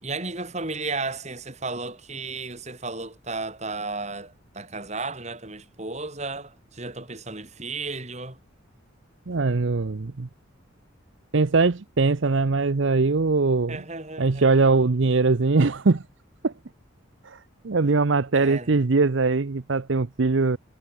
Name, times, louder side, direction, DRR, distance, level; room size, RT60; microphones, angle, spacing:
voice 1, 0.0-8.4 13.7-14.5 18.3-18.8, right 3 dB, 35° right, 3.2 m, -34 dB
voice 2, 9.3-10.3 11.3-13.8 14.2-16.0 16.4-16.5 17.2-17.4 17.6-20.6, right 3 dB, 65° right, 0.7 m, -21 dB
head